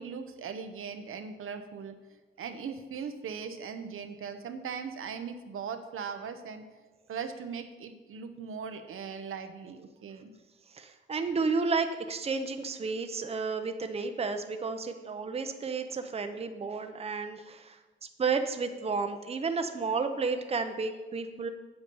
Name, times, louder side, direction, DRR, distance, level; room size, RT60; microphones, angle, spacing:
voice 1, 0.0-2.0 2.4-6.6 7.1-10.3, right 6 dB, 85° right, 7 dB, 0.9 m, -39 dB
voice 2, 10.7-17.8 18.2-21.5, right 4 dB, 30° right, 7 dB, 0.6 m, -32 dB
8.3 x 8.0 x 5.4 m, 1.2 s
wide cardioid pair, 150°, 21 cm